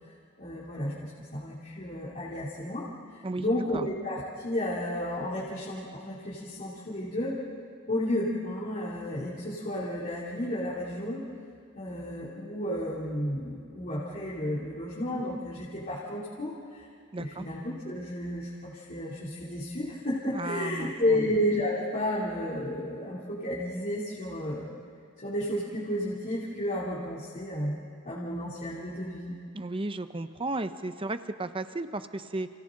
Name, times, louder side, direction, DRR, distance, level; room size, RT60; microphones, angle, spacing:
voice 1, 0.4-2.9 3.1-7.4 7.9-11.2 11.7-16.9 17.2-24.7 25.2-27.8 28.0-29.3, left 1 dB, 40° left, -8 dB, 3.1 m, -32 dB
voice 2, 3.2-3.9 17.1-17.5 20.3-21.3 29.5-32.5, right 2 dB, 25° right, 10 dB, 0.8 m, -34 dB
30.0 x 29.5 x 3.9 m, 2.3 s
head